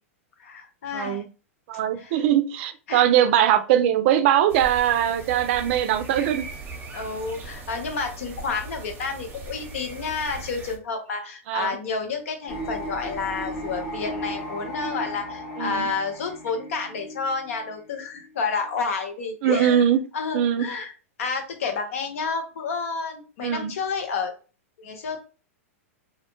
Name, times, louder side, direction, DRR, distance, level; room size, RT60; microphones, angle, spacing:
voice 1, 0.4-1.2 2.0-2.2 2.9-3.0 6.9-19.8 20.1-20.9 21.2-24.3 24.8-25.2, left 4 dB, 70° left, 5 dB, 0.7 m, -30 dB
voice 2, 0.9-1.3 1.7-6.5 11.5-11.8 15.6-15.9 19.4-20.0 20.3-20.7 23.4-23.7, right 10 dB, 55° right, 11 dB, 0.4 m, -21 dB
sound 1, 4.5-10.8, right 3 dB, 25° right, 0.8 m, -39 dB
sound 2, 12.5-18.8, equal, 50° left, 1.1 m, -36 dB
2.4 x 2.1 x 2.9 m, 0.35 s
hypercardioid pair, 115°, 8 cm